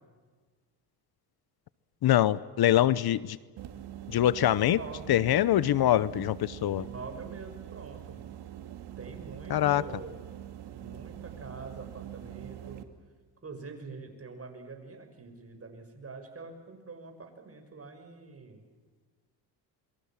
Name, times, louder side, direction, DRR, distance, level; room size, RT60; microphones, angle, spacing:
voice 1, 2.0-3.4 4.1-4.8 5.1-6.9 9.5-9.8, left 12 dB, 60° left, 18 dB, 0.9 m, -24 dB
sound 1, 3.6-12.8, right 12 dB, 75° right, 2.4 m, -44 dB
voice 2, 4.5-5.1 6.6-8.2 9.0-10.2 10.7-12.8 13.4-18.6, right 4 dB, 35° right, 5 dB, 6.3 m, -45 dB
28.0 x 23.0 x 7.4 m, 1.5 s
cardioid pair, 90°, 41 cm